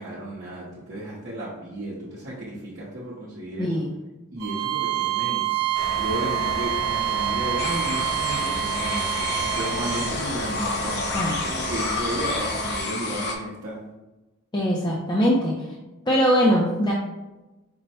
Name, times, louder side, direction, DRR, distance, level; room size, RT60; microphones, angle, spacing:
voice 1, 0.0-3.8 4.3-5.6 5.9-11.2 11.4-13.9, right 1 dB, 50° right, -8 dB, 0.9 m, -33 dB
Bowed string instrument, 4.4-10.1, right 14 dB, 90° right, 0.7 m, -27 dB
sound 1, 5.7-12.8, equal, 75° left, 1.2 m, -32 dB
sound 2, 7.6-13.3, left 3 dB, 50° left, 0.7 m, -30 dB
voice 2, 14.5-15.7 16.1-16.9, equal, 20° left, -4 dB, 0.5 m, -21 dB
5.3 x 2.1 x 4.2 m, 1.1 s
head